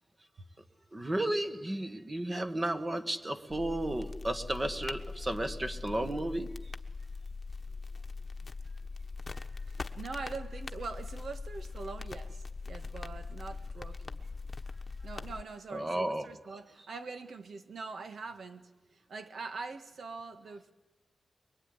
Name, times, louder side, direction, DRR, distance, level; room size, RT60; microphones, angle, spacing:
voice 1, 0.9-6.5 15.7-16.3, right 1 dB, 25° right, 8 dB, 1.6 m, -33 dB
sound 1, 3.5-15.4, left 4 dB, 35° left, 1.2 m, -41 dB
voice 2, 9.7-14.3 15.0-20.7, right 4 dB, 70° right, 8 dB, 1.8 m, -43 dB
24.0 x 23.0 x 9.9 m, 1.1 s
wide cardioid pair, 125°, 0 cm